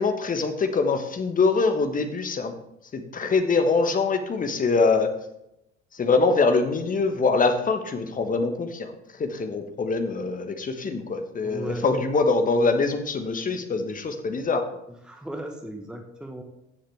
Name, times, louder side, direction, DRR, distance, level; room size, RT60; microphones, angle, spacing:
voice 1, 0.0-2.5 2.9-5.1 5.9-8.9 9.2-14.7, left 4 dB, 25° left, 7 dB, 1.3 m, -24 dB
voice 2, 11.4-11.9 15.0-16.4, right 1 dB, ahead, 4 dB, 1.3 m, -36 dB
14.5 x 7.3 x 3.4 m, 0.83 s
figure-of-eight pair, 65°, 35 cm